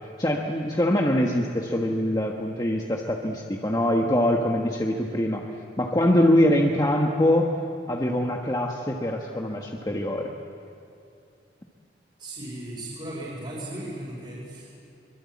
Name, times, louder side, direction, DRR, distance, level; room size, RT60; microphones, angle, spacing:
voice 1, 0.2-5.4 5.8-7.5 7.9-10.3, left 1 dB, 20° left, 0 dB, 1.3 m, -23 dB
voice 2, 12.2-14.7, right 1 dB, 30° right, -8 dB, 5.4 m, -36 dB
24.5 x 23.0 x 8.5 m, 2.6 s
head